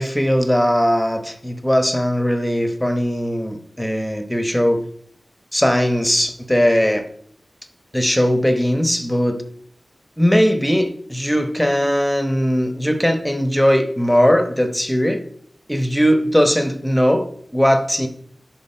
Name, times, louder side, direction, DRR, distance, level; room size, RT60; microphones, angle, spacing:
voice 1, 0.0-4.8 5.5-7.0 7.9-9.4 10.2-15.2 15.7-18.1, equal, 5° left, 1.0 m, -19 dB
10.0 x 4.5 x 4.4 m
wide cardioid pair, 90°, 0 cm